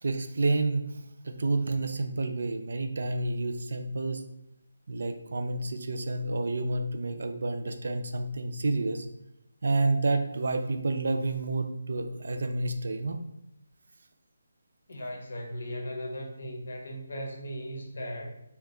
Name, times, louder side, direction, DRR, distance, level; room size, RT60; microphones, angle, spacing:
voice 1, 0.0-4.2 4.9-9.1 9.6-13.2, right 2 dB, 65° right, 6 dB, 0.3 m, -29 dB
voice 2, 14.9-18.3, equal, 65° left, 1 dB, 0.8 m, -37 dB
2.9 x 2.2 x 3.7 m, 0.81 s
figure-of-eight pair, 155°, 0 cm